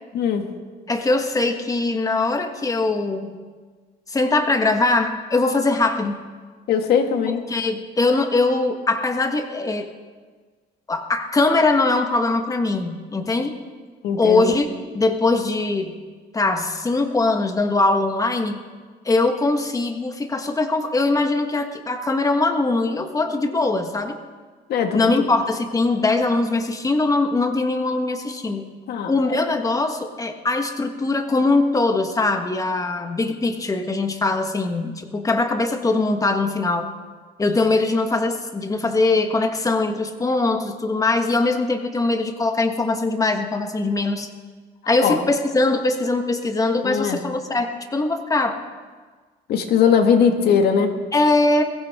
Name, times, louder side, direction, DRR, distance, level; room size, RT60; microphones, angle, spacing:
voice 1, 0.1-0.5 6.7-7.4 14.0-14.5 24.7-25.3 28.9-29.4 45.0-45.2 46.8-47.2 49.5-50.9, left 7 dB, 70° left, 5 dB, 1.9 m, -20 dB
voice 2, 0.9-3.4 4.1-6.2 7.5-9.9 10.9-13.6 14.2-14.7 14.9-16.0 16.3-18.6 19.0-24.2 24.9-28.7 29.1-36.9 37.4-44.3 44.9-48.6 51.1-51.6, left 3 dB, 20° left, 5 dB, 1.5 m, -21 dB
22.0 x 15.5 x 3.7 m, 1.5 s
cardioid pair, 110°, 17 cm